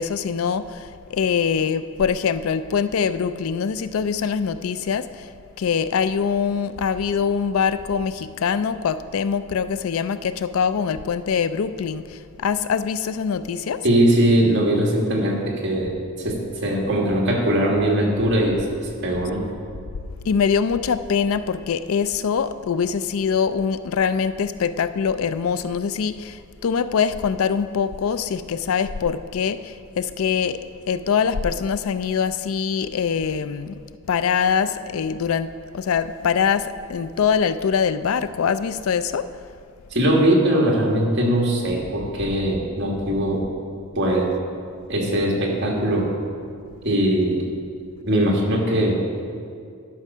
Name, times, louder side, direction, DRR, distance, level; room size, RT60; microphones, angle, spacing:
voice 1, 0.0-5.3 5.6-13.8 20.2-33.8 34.1-39.3, left 6 dB, 85° left, 13 dB, 0.4 m, -23 dB
voice 2, 13.8-15.9 16.2-18.6 19.0-19.4 39.9-43.4 44.0-44.3 44.9-46.1 46.8-47.4 48.0-49.0, right 1 dB, 60° right, -1 dB, 2.0 m, -20 dB
11.5 x 6.0 x 5.5 m, 2.3 s
head